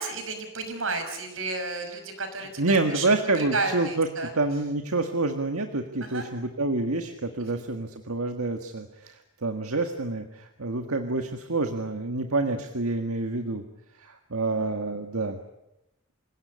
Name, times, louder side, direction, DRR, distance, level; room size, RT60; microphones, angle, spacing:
voice 1, 0.0-2.6 2.9-3.1 3.4-4.3 6.0-6.3, right 3 dB, 70° right, 7 dB, 5.9 m, -32 dB
voice 2, 2.6-13.6 14.0-15.4, right 2 dB, 90° right, 6 dB, 1.8 m, -28 dB
27.5 x 17.0 x 9.9 m, 0.88 s
head